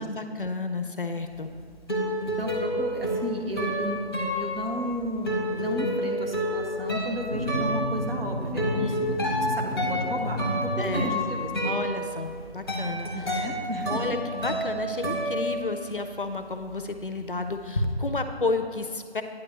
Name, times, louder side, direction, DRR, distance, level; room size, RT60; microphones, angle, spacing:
voice 1, 0.0-1.5 8.8-9.0 10.8-11.1 11.6-13.1 13.9-19.2, left 3 dB, 55° left, 8 dB, 0.5 m, -31 dB
sound 1, 1.3-16.1 16.4-17.9, equal, 20° left, 0.8 m, -30 dB
voice 2, 2.2-8.9 9.4-11.7 13.1-14.0, equal, 60° right, 1 dB, 1.2 m, -33 dB
sound 2, 7.3-11.6, equal, 30° right, 0.6 m, -32 dB
9.4 x 3.3 x 6.5 m, 2.1 s
figure-of-eight pair, 165°, 33 cm